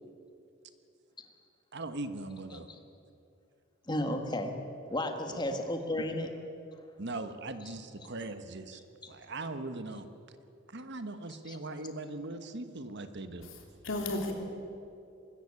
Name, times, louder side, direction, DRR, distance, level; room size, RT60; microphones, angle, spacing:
voice 1, 1.7-2.7 5.3-5.4 7.0-8.8 9.1-10.1 10.7-13.5, right 2 dB, 60° right, 9 dB, 1.3 m, -40 dB
voice 2, 3.9-4.6 4.9-6.3 11.5-11.6, left 1 dB, 20° left, 5 dB, 1.6 m, -33 dB
voice 3, 13.4-14.3, left 2 dB, 80° left, 2 dB, 3.3 m, -35 dB
23.5 x 13.5 x 8.7 m, 2.6 s
head